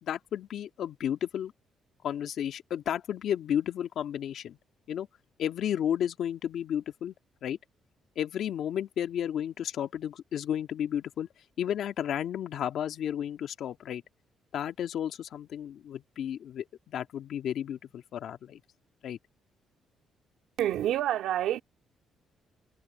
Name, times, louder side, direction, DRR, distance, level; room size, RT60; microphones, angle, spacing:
voice 1, 0.0-1.5 2.0-4.6 4.9-5.1 5.4-7.1 7.4-7.6 8.2-11.3 11.6-14.0 14.5-18.6 19.0-19.2, left 10 dB, 70° left, 1.9 m, -32 dB
voice 2, 20.6-21.6, right 12 dB, 80° right, 2.5 m, -27 dB
cardioid pair, 90°, 0 cm